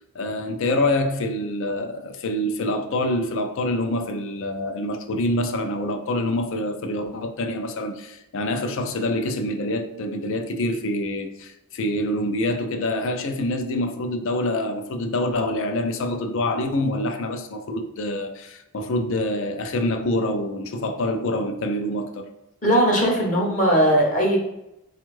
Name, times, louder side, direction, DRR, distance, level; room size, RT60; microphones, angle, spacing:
voice 1, 0.1-22.3, left 1 dB, 60° left, 0.4 m, -26 dB
voice 2, 22.6-24.4, equal, 35° left, 0.8 m, -19 dB
4.3 x 2.3 x 3.1 m
head